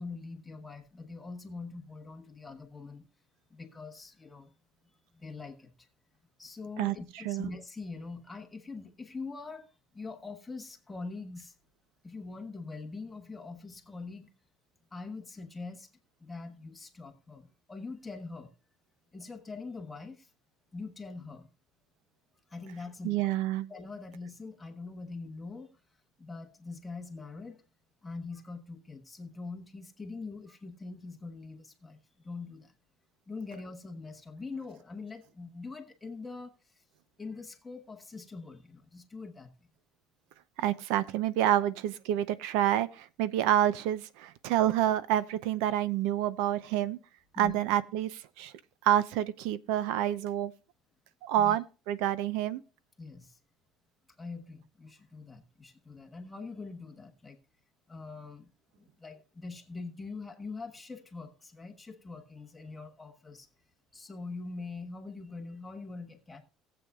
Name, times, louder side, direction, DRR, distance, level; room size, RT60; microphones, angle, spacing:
voice 1, 0.0-3.1 3.5-4.5 5.1-5.9 6.4-11.5 12.0-14.3 14.9-15.9 16.2-18.5 19.1-20.3 20.7-21.5 22.5-23.3 23.7-25.7 26.2-27.6 28.0-32.0 32.2-32.7 33.3-36.5 37.2-39.5 47.3-47.6 51.4-51.6 53.0-53.4 54.2-57.4 57.9-58.5 58.8-63.5 63.9-66.4, left 3 dB, 10° left, 1.2 m, -43 dB
voice 2, 6.8-7.5 23.0-23.7 40.6-47.0 47.4-48.5 48.8-50.5 51.2-52.6, right 12 dB, 80° right, 0.6 m, -28 dB
18.5 x 8.0 x 2.3 m
cardioid pair, 180°, 0 cm